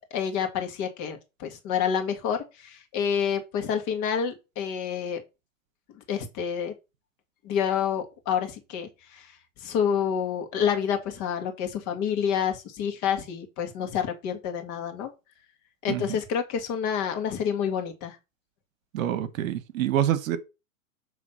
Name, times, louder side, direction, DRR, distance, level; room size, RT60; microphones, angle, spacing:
voice 1, 0.1-5.2 6.1-6.7 7.4-9.3 9.6-15.1 15.8-18.2, left 8 dB, 40° left, 1.7 m, -28 dB
voice 2, 18.9-20.4, right 11 dB, 70° right, 1.1 m, -26 dB
7.3 x 3.3 x 5.5 m
hypercardioid pair, 125°, 43 cm